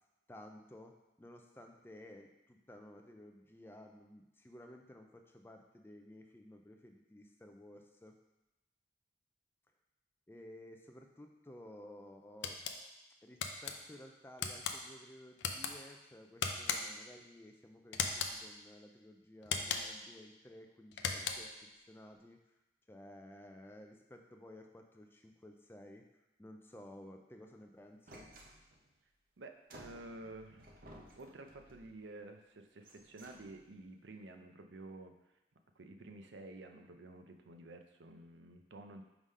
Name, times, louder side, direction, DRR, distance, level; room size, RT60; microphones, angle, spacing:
voice 1, 0.3-8.1 10.3-12.6 13.2-22.4 22.9-26.1 26.4-28.3, left 1 dB, 10° left, 3 dB, 0.4 m, -55 dB
sound 1, 12.4-12.8 13.4-13.7 14.4-14.8 15.4-15.7 16.4-17.0 17.9-18.4 19.4-20.0 20.9-21.6, left 6 dB, 85° left, 0.5 m, -37 dB
sound 2, 28.1-29.0 29.7-32.0 32.7-33.8, right 1 dB, 50° right, 0.8 m, -57 dB
voice 2, 29.4-30.8 31.2-35.2 35.8-39.0, right 2 dB, 85° right, 5 dB, 0.6 m, -51 dB
4.9 x 3.7 x 5.4 m, 0.99 s
head